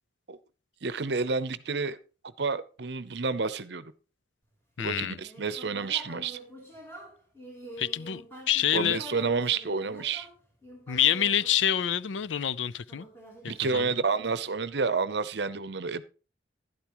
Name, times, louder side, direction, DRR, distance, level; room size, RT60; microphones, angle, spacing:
voice 1, 0.8-2.0 2.4-3.9 4.8-6.4 8.7-10.3 13.5-16.0, right 4 dB, 65° right, 0.7 m, -29 dB
voice 2, 4.8-5.2 7.8-9.0 10.9-13.1 13.6-13.9, left 10 dB, 80° left, 0.5 m, -27 dB
Human voice, 4.9-12.3 12.9-14.3, equal, 10° left, 3.9 m, -47 dB
12.0 x 11.0 x 3.0 m
head